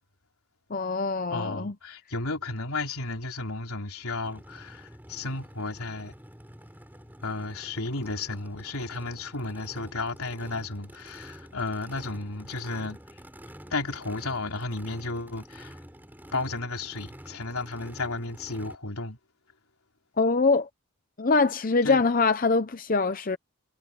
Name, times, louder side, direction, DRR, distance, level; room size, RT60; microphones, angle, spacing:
voice 1, 0.7-1.7 20.2-20.7 21.2-23.4, left 4 dB, 40° left, 0.7 m, -23 dB
voice 2, 1.3-6.1 7.2-13.2 13.7-15.8 16.3-19.2 21.8-22.1, left 3 dB, 80° left, 3.6 m, -33 dB
Race car auto racing / Idling / Accelerating revving vroom, 4.2-18.7, equal, 10° right, 5.3 m, -48 dB
head